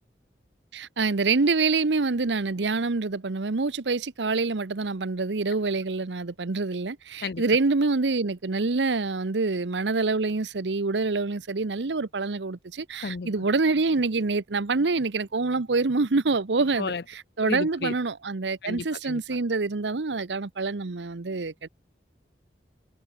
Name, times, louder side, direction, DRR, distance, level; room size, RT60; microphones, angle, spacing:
voice 1, 0.7-21.7, right 3 dB, 90° right, 0.9 m, -26 dB
voice 2, 13.0-13.3 16.8-17.0 17.4-17.9 18.6-19.2, left 4 dB, 60° left, 0.6 m, -32 dB
head